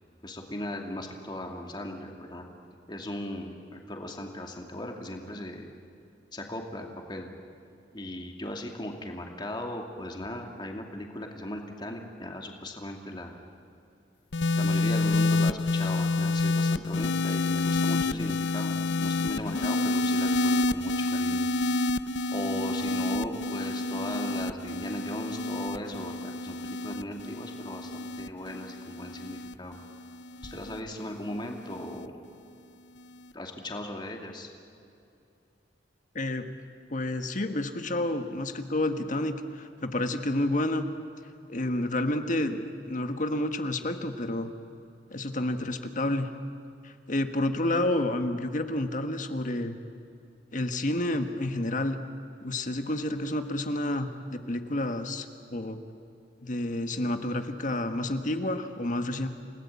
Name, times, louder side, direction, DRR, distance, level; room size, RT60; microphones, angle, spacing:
voice 1, 0.2-2.5 2.9-5.7 6.3-7.3 7.9-13.4 14.6-21.5 22.3-29.8 30.4-32.3 33.3-34.5, left 1 dB, 25° left, 2 dB, 2.6 m, -37 dB
sound 1, 14.3-30.8 31.7-32.1, left 2 dB, 75° left, 0.7 m, -28 dB
voice 2, 36.1-36.5 36.9-40.9 41.5-44.5 45.1-46.3 46.8-49.8 50.5-52.0 52.4-55.8 56.4-59.3, left 1 dB, 45° left, 7 dB, 1.6 m, -29 dB
29.5 x 18.5 x 8.5 m, 2.6 s
head